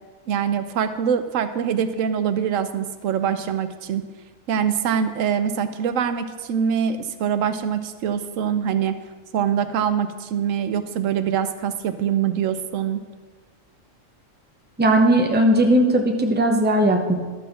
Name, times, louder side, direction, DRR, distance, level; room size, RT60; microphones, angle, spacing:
voice 1, 0.3-4.0 4.5-9.0 9.3-13.0, right 8 dB, 80° right, 10 dB, 1.0 m, -24 dB
voice 2, 14.8-17.1, right 1 dB, 10° right, 2 dB, 0.7 m, -18 dB
12.5 x 4.2 x 6.7 m, 1.4 s
omnidirectional pair, 1.4 m